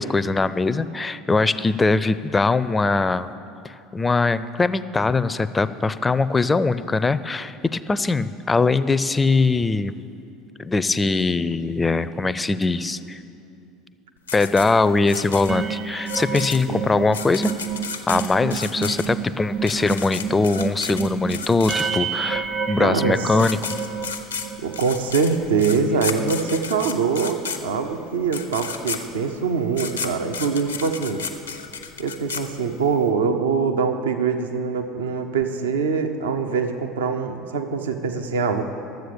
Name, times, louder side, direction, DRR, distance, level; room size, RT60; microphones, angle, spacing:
voice 1, 0.0-3.3 3.6-9.9 10.6-13.2 14.3-17.5 18.1-23.6, left 3 dB, 15° left, 15 dB, 0.4 m, -21 dB
sound 1, 14.3-22.2 23.0-23.1 23.3-33.0, left 6 dB, 85° left, 0.7 m, -33 dB
sound 2, 15.5-24.9 25.3-25.5 25.7-26.1, right 6 dB, 30° right, 0.7 m, -30 dB
voice 2, 22.8-23.4 24.6-31.2 32.0-38.7, right 5 dB, 75° right, 6 dB, 0.7 m, -23 dB
12.0 x 7.8 x 6.8 m, 2.6 s
figure-of-eight pair, 70°, 0 cm